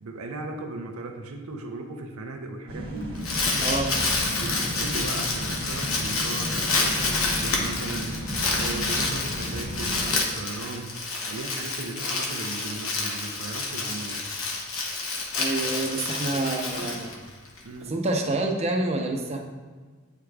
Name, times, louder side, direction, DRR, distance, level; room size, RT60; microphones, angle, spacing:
voice 1, 0.0-3.1 4.3-14.2 16.3-17.1 17.6-18.0, right 2 dB, 85° right, 3 dB, 0.6 m, -37 dB
sound 1, 2.7-10.1, equal, 65° right, 1.1 m, -34 dB
Crumpling crinkling, 3.0-17.6, left 3 dB, 80° left, 0.9 m, -28 dB
voice 2, 3.6-4.0 15.3-17.1 17.8-19.4, right 2 dB, 30° right, 1 dB, 0.6 m, -27 dB
8.7 x 4.7 x 2.3 m, 1.5 s
head